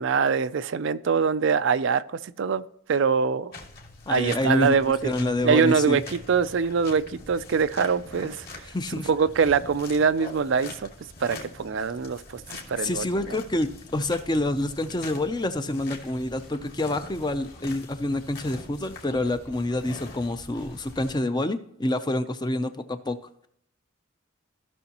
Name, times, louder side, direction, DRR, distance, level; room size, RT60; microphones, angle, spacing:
voice 1, 0.0-2.6 2.9-3.5 4.1-5.1 5.4-8.7 9.0-10.9 11.2-12.4 12.7-13.4, right 5 dB, 55° right, 0.4 m, -24 dB
sound 1, 3.5-21.1, left 3 dB, 45° left, 2.2 m, -44 dB
voice 2, 4.1-4.8 5.0-6.0 8.6-9.1 12.8-23.2, left 1 dB, 20° left, 0.5 m, -27 dB
sound 2, 12.7-21.1, left 1 dB, 75° left, 2.7 m, -55 dB
15.5 x 6.2 x 2.9 m
head